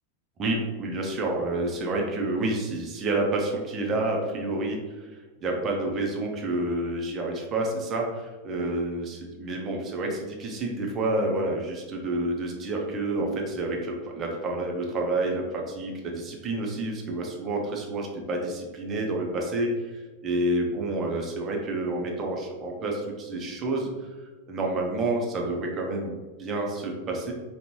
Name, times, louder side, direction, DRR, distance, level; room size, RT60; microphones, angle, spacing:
voice 1, 0.4-4.8 5.4-19.9 20.2-24.1 24.5-27.3, right 2 dB, 25° right, 0 dB, 0.9 m, -29 dB
5.1 x 2.5 x 2.9 m, 1.3 s
figure-of-eight pair, 90°, 0 cm